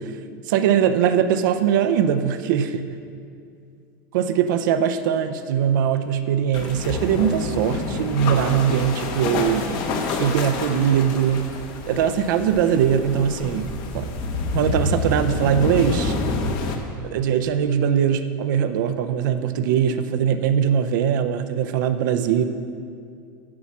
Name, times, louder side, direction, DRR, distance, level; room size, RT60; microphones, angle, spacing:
voice 1, 0.5-2.8 4.1-9.8 10.2-11.5 11.9-14.1 14.5-16.1 17.1-22.4, right 8 dB, 70° right, 9 dB, 0.6 m, -21 dB
sound 1, 6.5-16.8, left 3 dB, 45° left, 1.1 m, -28 dB
9.6 x 7.0 x 6.1 m, 2.3 s
supercardioid pair, 155°, 11 cm